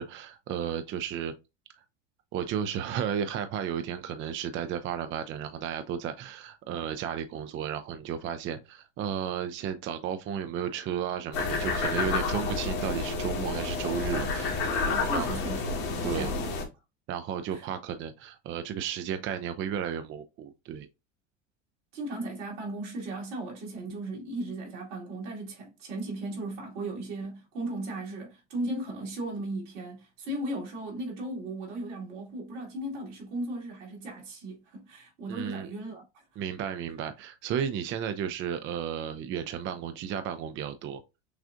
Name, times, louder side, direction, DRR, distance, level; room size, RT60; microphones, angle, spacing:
voice 1, 0.0-1.3 2.3-15.4 16.0-16.3 17.1-20.9 35.3-35.7 36.4-41.0, right 8 dB, 35° right, 0.4 m, -33 dB
sound 1, 11.3-16.6, left 4 dB, 55° left, 1.5 m, -30 dB
voice 2, 14.9-16.6 17.5-17.7 21.9-36.0, right 1 dB, 80° right, 2.2 m, -36 dB
6.3 x 2.4 x 2.5 m
hypercardioid pair, 95°, 35 cm